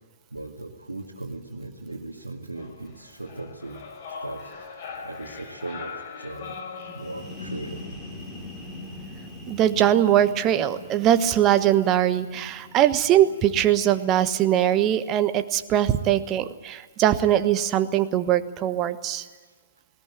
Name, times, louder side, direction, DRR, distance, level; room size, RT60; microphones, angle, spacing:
voice 1, 0.3-3.8 4.2-4.4 5.0-6.6 6.9-7.8 9.7-9.8, right 2 dB, 80° right, -3 dB, 2.2 m, -37 dB
sound 1, 2.6-7.6, left 5 dB, 45° left, 5.3 m, -40 dB
sound 2, 6.8-14.4, left 2 dB, 10° left, 5.0 m, -42 dB
voice 2, 9.5-19.2, right 11 dB, 25° right, 11 dB, 1.3 m, -21 dB
20.0 x 19.5 x 9.3 m, 1.4 s
figure-of-eight pair, 115°, 0 cm